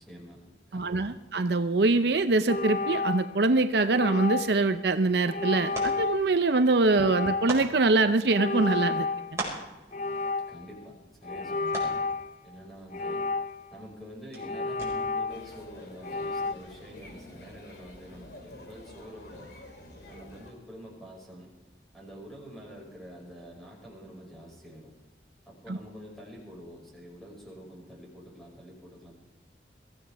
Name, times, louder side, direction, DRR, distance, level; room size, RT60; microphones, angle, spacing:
voice 1, 0.0-1.2 10.5-10.9 11.2-12.1 12.4-13.2 13.7-19.6 20.1-21.5 21.9-24.9 25.5-29.2, equal, ahead, -3 dB, 5.7 m, -47 dB
voice 2, 0.7-9.1 25.7-25.8, right 3 dB, 65° right, 9 dB, 0.6 m, -24 dB
sound 1, 2.5-3.5 3.9-4.7 5.3-6.3 6.9-7.8 8.3-9.5 9.9-10.7 11.2-12.3 12.9-13.8 14.4-15.6 16.0-16.5, left 3 dB, 45° left, 0.5 m, -31 dB
sound 2, 4.6-15.3, right 2 dB, 15° right, 5.3 m, -43 dB
sound 3, 15.3-20.5, left 1 dB, 60° left, 2.7 m, -49 dB
22.5 x 15.0 x 3.5 m, 1.1 s
head